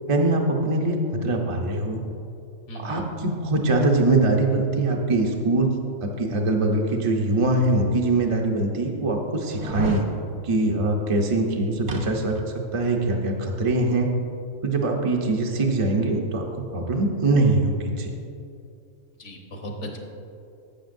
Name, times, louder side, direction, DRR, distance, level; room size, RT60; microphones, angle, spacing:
voice 1, 0.1-1.0 1.2-2.0 2.7-5.7 6.0-10.0 10.4-12.4 12.7-14.1 14.6-18.1, right 2 dB, 30° right, 0 dB, 0.6 m, -22 dB
voice 2, 2.7-3.0 19.2-20.0, equal, 65° left, 1 dB, 1.4 m, -36 dB
sound 1, 7.5-7.6 8.3-8.4 9.5-10.1 11.9-12.5 12.9-13.0, right 1 dB, 60° right, 1.0 m, -30 dB
11.5 x 8.1 x 2.6 m, 2.6 s
omnidirectional pair, 1.4 m